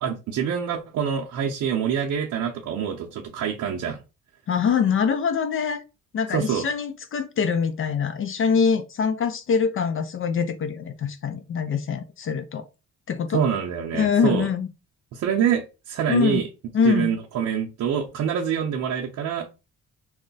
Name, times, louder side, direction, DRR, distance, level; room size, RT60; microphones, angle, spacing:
voice 1, 0.0-4.0 6.3-6.7 13.3-14.5 15.1-16.5 16.9-19.5, right 8 dB, 70° right, 0.6 m, -25 dB
voice 2, 4.5-5.8 6.1-12.6 13.1-13.4 13.9-14.7 16.1-16.4 16.7-17.1, left 6 dB, 45° left, 0.4 m, -24 dB
2.3 x 2.1 x 3.8 m
cardioid pair, 90°, 30 cm